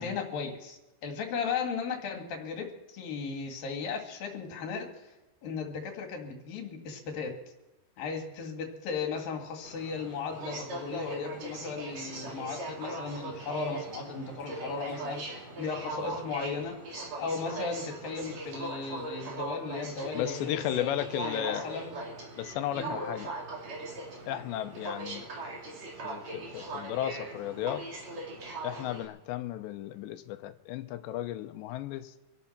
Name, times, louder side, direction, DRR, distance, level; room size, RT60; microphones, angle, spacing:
voice 1, 0.0-5.1 5.4-7.4 8.0-16.8 17.2-20.9 21.2-21.9 22.7-22.9, left 5 dB, 60° left, 3.5 m, -36 dB
Aircraft, 9.6-29.0, right 2 dB, 45° right, 3.6 m, -40 dB
voice 2, 20.1-21.6 22.4-23.3 24.3-25.3 26.0-27.9 28.6-32.1, left 12 dB, 85° left, 3.0 m, -34 dB
26.5 x 12.0 x 4.4 m
omnidirectional pair, 5.0 m